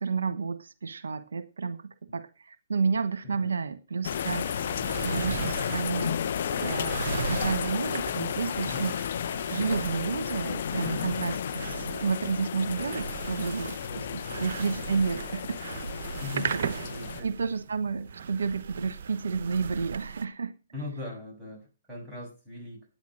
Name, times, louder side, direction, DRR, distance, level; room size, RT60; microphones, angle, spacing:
voice 1, 0.0-4.6 5.0-6.2 6.5-8.9 9.5-14.0 14.4-15.6 16.3-16.7 17.2-20.5, right 5 dB, 80° right, 12 dB, 1.1 m, -31 dB
sound 1, 4.0-17.2, left 9 dB, 60° left, 0.7 m, -33 dB
sound 2, 4.3-20.2, right 7 dB, 60° right, 0.9 m, -38 dB
voice 2, 8.6-9.0 13.8-14.2 16.2-16.5 16.8-17.5 20.7-22.9, left 3 dB, 10° right, -3 dB, 7.4 m, -40 dB
10.5 x 9.1 x 6.3 m, 0.33 s
hypercardioid pair, 135°, 0 cm